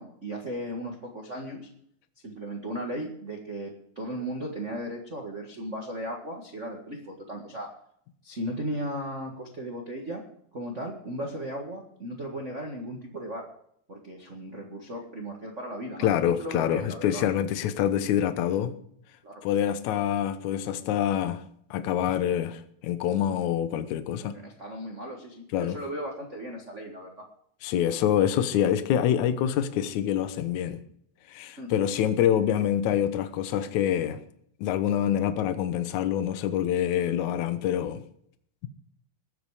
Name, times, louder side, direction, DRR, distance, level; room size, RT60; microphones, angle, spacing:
voice 1, 0.0-1.7 2.2-7.7 8.2-10.2 10.5-13.5 13.9-16.1 16.4-17.2 19.2-19.4 24.2-27.2 31.6-31.7, equal, 80° right, 0.6 m, -36 dB
voice 2, 16.0-18.8 19.4-21.4 21.7-24.4 25.5-25.8 27.6-30.8 31.3-34.2 34.6-38.0, left 10 dB, 70° left, 1.9 m, -26 dB
21.0 x 8.0 x 4.9 m
omnidirectional pair, 4.4 m